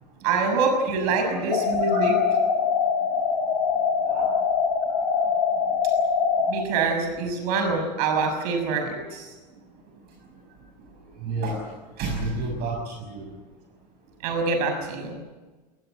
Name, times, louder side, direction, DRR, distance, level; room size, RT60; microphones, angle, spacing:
voice 1, 0.2-2.2 6.5-9.3 14.2-15.2, right 4 dB, 65° right, 5 dB, 6.4 m, -25 dB
voice 2, 1.0-1.6 4.0-4.3 8.9-9.0 11.2-11.7 12.0-13.3, right 2 dB, 50° right, 1 dB, 6.6 m, -30 dB
sound 1, 1.5-6.5, left 6 dB, 75° left, 3.8 m, -23 dB
21.0 x 20.5 x 8.9 m, 1.2 s
hypercardioid pair, 90°, 21 cm